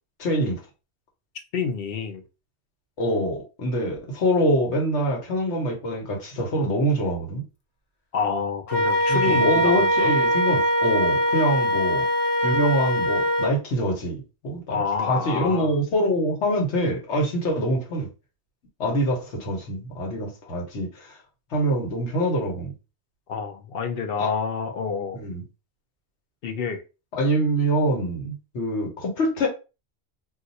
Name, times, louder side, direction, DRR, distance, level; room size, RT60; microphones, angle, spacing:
voice 1, 0.2-0.6 3.0-7.4 9.1-12.0 12.4-14.8 15.1-18.1 18.8-21.2 21.5-22.7 24.2-24.3 25.1-25.4 27.1-29.5, equal, 75° left, 1.3 m, -25 dB
voice 2, 1.5-2.2 8.1-10.1 14.7-15.7 23.3-25.2 26.4-26.8, left 5 dB, 60° left, 0.8 m, -28 dB
Wind instrument woodwind instrument, 8.7-13.5, equal, 35° left, 0.4 m, -22 dB
2.5 x 2.4 x 4.0 m
omnidirectional pair, 1.2 m